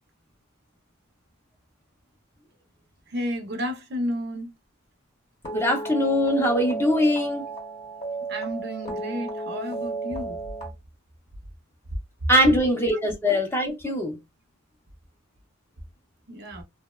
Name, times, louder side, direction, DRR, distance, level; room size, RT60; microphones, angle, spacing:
voice 1, 3.1-4.5 6.9-7.0 8.3-10.4 12.9-13.0 13.9-14.0 16.3-16.6, equal, 50° right, 0.6 m, -32 dB
sound 1, 5.4-10.7, right 3 dB, 30° left, 0.8 m, -33 dB
voice 2, 5.5-7.4 12.3-14.2, left 1 dB, 10° left, 0.4 m, -22 dB
2.7 x 2.0 x 2.2 m
head